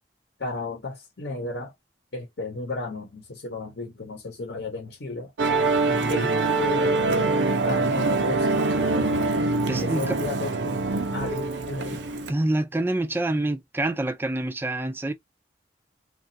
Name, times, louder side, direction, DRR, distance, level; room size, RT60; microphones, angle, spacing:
voice 1, 0.4-1.7 2.1-5.3 6.1-9.3 9.8-10.8 11.1-12.1, left 3 dB, 65° left, 0.8 m, -34 dB
Musical instrument, 5.4-12.3, right 3 dB, 75° right, 0.6 m, -24 dB
voice 2, 5.9-6.4 9.7-10.2 11.9-12.0 12.3-15.1, right 2 dB, 10° right, 0.3 m, -27 dB
2.9 x 2.4 x 2.6 m
head